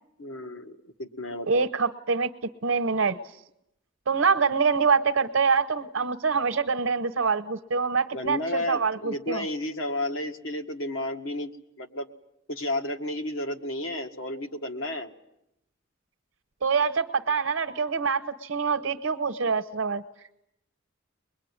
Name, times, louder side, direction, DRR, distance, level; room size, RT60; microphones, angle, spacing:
voice 1, 0.2-1.7 8.1-11.5 11.8-12.1 12.5-15.1, left 1 dB, 85° left, 6 dB, 1.6 m, -32 dB
voice 2, 1.5-2.3 2.6-3.2 4.1-9.4 16.6-20.0, right 5 dB, 80° right, 7 dB, 0.9 m, -25 dB
23.0 x 21.5 x 9.6 m, 0.83 s
head